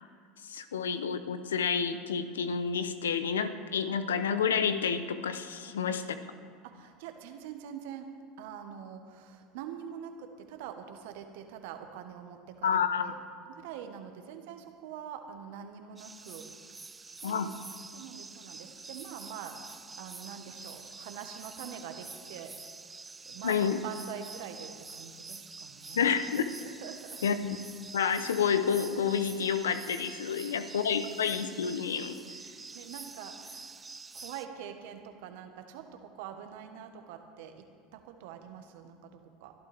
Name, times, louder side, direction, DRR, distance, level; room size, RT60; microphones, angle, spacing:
voice 1, 0.4-6.0 12.6-13.1 17.2-17.5 23.4-23.8 25.9-26.5 27.2-27.6 27.9-32.2, left 7 dB, 85° left, 11 dB, 0.7 m, -29 dB
voice 2, 5.6-6.0 6.6-8.1 8.4-13.2 13.5-16.5 17.2-17.6 17.9-22.5 23.2-27.2 30.5-31.0 32.3-33.8 34.1-37.7 37.9-39.5, right 8 dB, 70° right, 6 dB, 1.3 m, -45 dB
sound 1, 16.0-34.5, right 4 dB, 15° right, 0.8 m, -47 dB
22.5 x 12.0 x 3.5 m, 2.2 s
hypercardioid pair, 80°, 0 cm